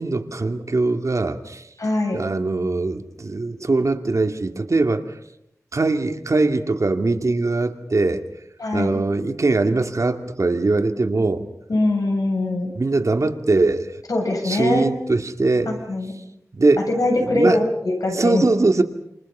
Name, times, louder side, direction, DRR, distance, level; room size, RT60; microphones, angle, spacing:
voice 1, 0.0-1.7 2.1-5.1 5.7-8.2 8.7-11.4 12.8-14.0 14.4-15.8 16.5-16.8 17.2-17.6 18.1-18.8, right 3 dB, 65° right, 5 dB, 2.2 m, -21 dB
voice 2, 1.8-2.2 8.6-9.0 11.7-12.7 14.1-14.9 15.7-16.1 16.8-18.4, left 2 dB, 85° left, 1 dB, 7.9 m, -22 dB
28.5 x 28.0 x 5.6 m, 0.76 s
wide cardioid pair, 70°, 6 cm